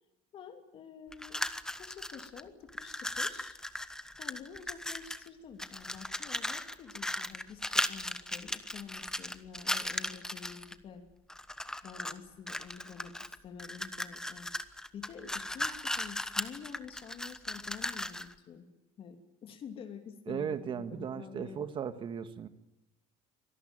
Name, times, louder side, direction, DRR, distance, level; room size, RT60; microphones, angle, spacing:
voice 1, 0.3-1.5 1.8-3.6 4.2-11.0 11.8-14.5 14.9-18.7 19.0-21.7, left 7 dB, 40° left, 5 dB, 3.0 m, -48 dB
sound 1, 1.1-2.4 2.7-5.3 5.6-10.7 11.3-12.2 12.5-18.3, left 1 dB, 5° left, 1.1 m, -37 dB
voice 2, 20.3-22.5, right 7 dB, 35° right, 10 dB, 1.9 m, -37 dB
25.0 x 18.5 x 9.1 m, 0.96 s
cardioid pair, 155°, 14 cm